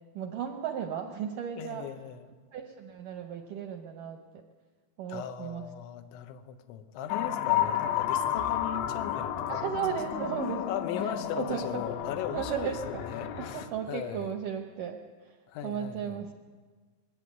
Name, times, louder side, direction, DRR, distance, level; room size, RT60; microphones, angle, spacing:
voice 1, 0.1-1.9 2.5-4.4 5.0-5.7 9.5-10.7 11.0-11.8 12.3-15.4 15.6-16.3, right 8 dB, 75° right, 4 dB, 1.9 m, -35 dB
voice 2, 1.6-2.3 5.1-9.6 10.7-14.3 15.5-16.2, left 9 dB, 90° left, 8 dB, 3.5 m, -38 dB
sound 1, 7.1-13.7, left 10 dB, 75° left, 3.3 m, -32 dB
21.5 x 16.5 x 9.5 m, 1.5 s
omnidirectional pair, 5.2 m